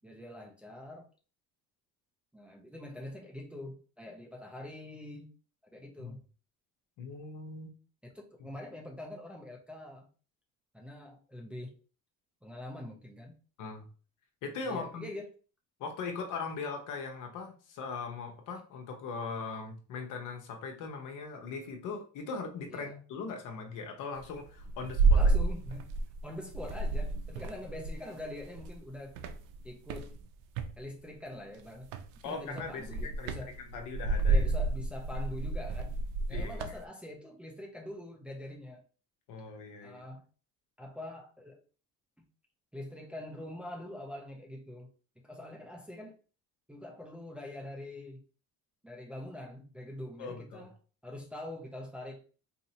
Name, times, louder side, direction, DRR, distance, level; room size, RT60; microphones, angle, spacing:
voice 1, 0.0-1.1 2.3-5.3 5.7-6.2 8.0-10.1 10.7-11.8 12.4-13.4 14.6-15.3 22.7-23.0 25.1-25.9 26.2-29.2 29.6-30.1 30.8-31.9 32.2-33.5 34.3-36.0 36.3-38.8 39.8-40.3 40.8-41.6 42.7-44.9 45.2-46.1 46.7-48.2 48.8-50.7 51.0-52.2, left 1 dB, 5° right, 0.5 m, -44 dB
voice 2, 7.0-7.7 13.6-13.9 14.4-15.1 15.8-25.3 32.2-34.5 36.3-36.8 39.3-40.0 50.2-50.7, left 4 dB, 70° left, 0.9 m, -40 dB
sound 1, 24.2-26.2 26.5-28.8 29.2-30.7 31.8-32.2 32.6-36.8, right 3 dB, 75° right, 0.5 m, -30 dB
4.1 x 2.7 x 2.8 m
cardioid pair, 145°, 32 cm